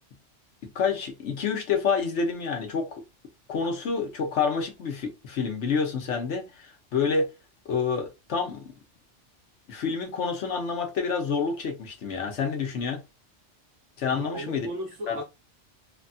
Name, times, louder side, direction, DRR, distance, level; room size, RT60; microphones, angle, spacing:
voice 1, 0.7-3.0 3.5-7.3 7.6-8.6 9.7-13.0 14.0-14.7 15.1-15.2, left 5 dB, 75° left, 1.1 m, -28 dB
voice 2, 14.1-15.2, right 1 dB, 85° right, 1.4 m, -36 dB
3.3 x 2.3 x 2.5 m
omnidirectional pair, 1.2 m